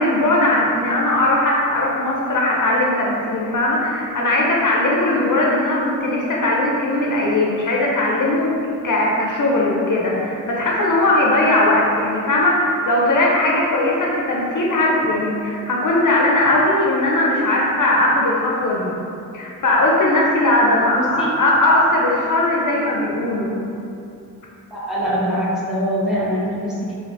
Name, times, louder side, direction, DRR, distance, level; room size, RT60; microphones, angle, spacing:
voice 1, 0.0-8.5 8.8-18.9 19.3-23.5, left 1 dB, 60° left, -3 dB, 0.5 m, -19 dB
voice 2, 21.0-21.3 24.7-27.0, equal, ahead, -8 dB, 0.8 m, -23 dB
3.3 x 2.5 x 2.5 m, 2.6 s
wide cardioid pair, 100°, 35 cm